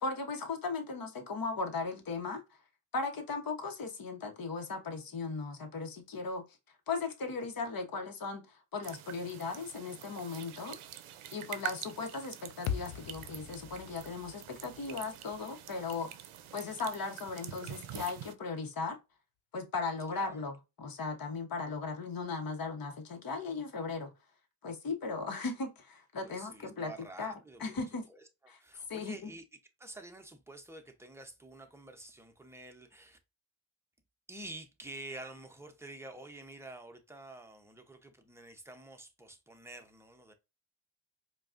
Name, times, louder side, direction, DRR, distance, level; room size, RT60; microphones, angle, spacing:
voice 1, 0.0-2.4 2.9-6.4 6.9-10.8 11.3-16.1 16.5-19.0 19.5-24.1 24.6-26.9 27.2-28.1 28.5-28.6 28.9-29.3, left 4 dB, 45° left, 1.0 m, -37 dB
sound 1, 8.8-18.3, right 11 dB, 85° right, 0.6 m, -46 dB
sound 2, 12.7-16.9, left 8 dB, 90° left, 0.6 m, -42 dB
voice 2, 26.2-27.6 28.1-29.4 29.8-33.2 34.3-40.3, right 2 dB, 5° right, 0.7 m, -49 dB
4.5 x 2.3 x 2.5 m
cardioid pair, 70°, 48 cm